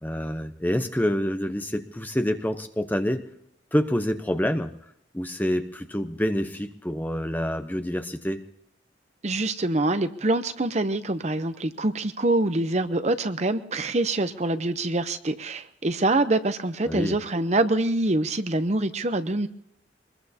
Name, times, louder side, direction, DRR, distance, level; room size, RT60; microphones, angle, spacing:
voice 1, 0.0-3.3 3.7-4.7 5.1-8.4 16.9-17.2, equal, 10° left, 8 dB, 0.8 m, -27 dB
voice 2, 9.2-19.5, right 2 dB, 35° right, 11 dB, 0.7 m, -25 dB
24.0 x 21.0 x 2.8 m, 0.74 s
head